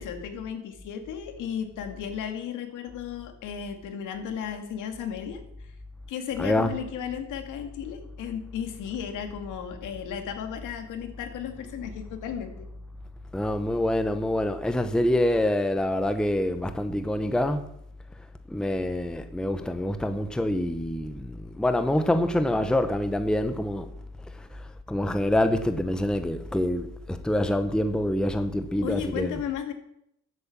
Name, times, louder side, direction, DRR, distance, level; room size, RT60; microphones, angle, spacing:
voice 1, 0.0-5.7 6.1-12.7 28.8-29.7, left 8 dB, 70° left, 2.5 m, -34 dB
voice 2, 6.4-6.7 13.3-17.7 18.5-23.9 24.9-29.3, left 1 dB, ahead, 0.8 m, -26 dB
13.0 x 8.1 x 7.5 m
cardioid pair, 125°, 32 cm